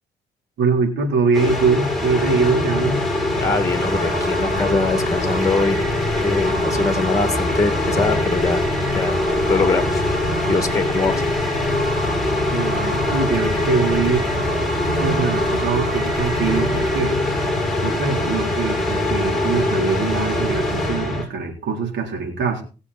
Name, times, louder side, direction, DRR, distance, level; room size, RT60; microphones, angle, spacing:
voice 1, 0.6-3.1 12.5-14.3 15.0-17.2 17.8-22.6, right 4 dB, 75° right, 3 dB, 3.8 m, -23 dB
sound 1, 1.3-21.2, left 1 dB, ahead, 6.7 m, -22 dB
voice 2, 3.4-5.8 6.2-8.7 8.9-9.2 9.5-11.2, left 3 dB, 15° left, 8 dB, 2.1 m, -23 dB
sound 2, 3.8-17.0, right 5 dB, 55° right, 5.7 m, -35 dB
20.0 x 7.1 x 4.3 m, 0.34 s
cardioid pair, 85°, 18 cm